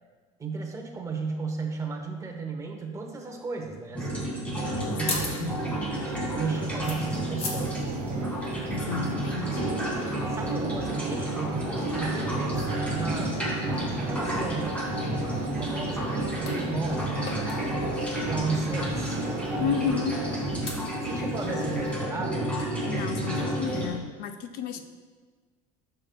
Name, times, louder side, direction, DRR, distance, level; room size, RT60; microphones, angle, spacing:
voice 1, 0.4-4.3 4.9-8.4 10.3-13.4 14.0-14.9 15.6-17.1 17.6-19.2 21.0-22.5 24.8-24.9, right 4 dB, 20° right, 2 dB, 0.9 m, -35 dB
sound 1, 3.9-23.9, right 1 dB, 5° left, 1.9 m, -30 dB
sound 2, 4.6-22.0, left 2 dB, 35° left, 1.3 m, -43 dB
voice 2, 4.8-5.5 8.7-9.6 19.6-20.2 22.8-24.8, left 8 dB, 60° left, 7 dB, 0.5 m, -32 dB
sound 3, 4.9-20.6, right 5 dB, 45° right, 0.8 m, -39 dB
9.7 x 6.8 x 2.2 m, 1.4 s
cardioid pair, 145°, 17 cm